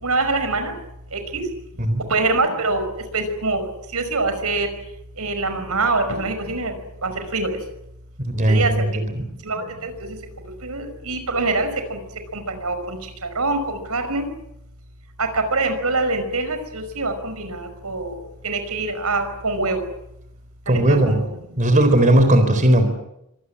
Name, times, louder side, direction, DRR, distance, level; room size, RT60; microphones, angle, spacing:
voice 1, 0.0-0.7 1.1-1.4 2.1-2.8 3.1-3.6 3.9-4.7 5.2-6.7 7.0-7.5 8.5-8.7 9.4-10.2 10.6-12.0 12.3-13.0 13.4-14.3 15.2-18.1 18.4-19.8 20.7-21.2, right 3 dB, 80° right, 8 dB, 5.3 m, -24 dB
voice 2, 20.7-21.2 21.6-22.9, right 1 dB, 35° right, 8 dB, 4.0 m, -16 dB
26.0 x 18.5 x 9.8 m, 0.83 s
head